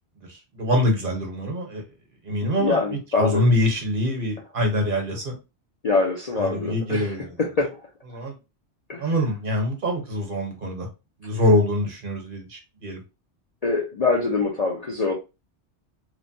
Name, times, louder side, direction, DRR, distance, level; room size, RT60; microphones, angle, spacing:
voice 1, 0.5-1.8 2.2-2.8 3.1-5.3 6.4-7.4 8.1-8.3 9.0-10.9 11.2-13.0, left 1 dB, 50° right, 1.0 m, -24 dB
voice 2, 2.4-3.4 5.8-7.8 8.9-9.1 13.6-15.1, left 3 dB, 45° left, 0.5 m, -24 dB
3.1 x 2.1 x 2.6 m
omnidirectional pair, 1.2 m